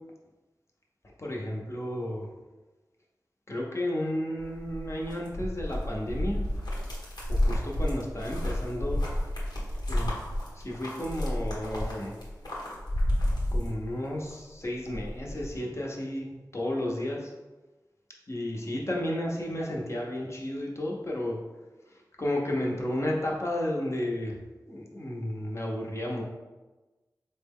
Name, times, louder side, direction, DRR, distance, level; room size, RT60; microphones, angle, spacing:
voice 1, 1.2-2.3 3.5-6.5 7.4-9.0 9.9-12.1 13.5-17.3 18.3-21.4 21.9-24.4 24.7-26.2, left 1 dB, 40° left, -2 dB, 0.7 m, -32 dB
sound 1, 4.4-14.3 14.6-15.5, left 1 dB, 80° left, 1.0 m, -31 dB
4.0 x 2.1 x 3.5 m, 1.2 s
wide cardioid pair, 55°, 7 cm